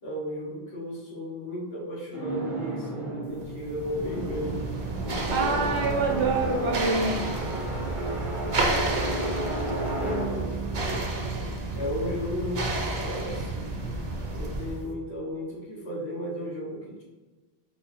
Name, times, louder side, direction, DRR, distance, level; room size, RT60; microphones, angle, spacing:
voice 1, 0.0-4.6 8.6-11.0 11.7-13.7 14.3-17.0, equal, 70° left, -6 dB, 1.6 m, -35 dB
sound 1, 2.1-12.1, right 1 dB, ahead, 0.7 m, -34 dB
sound 2, 3.4-14.9, right 2 dB, 45° right, 0.6 m, -31 dB
voice 2, 5.3-7.3, right 3 dB, 80° right, 2 dB, 1.0 m, -26 dB
4.8 x 2.3 x 4.2 m, 1.2 s
omnidirectional pair, 1.1 m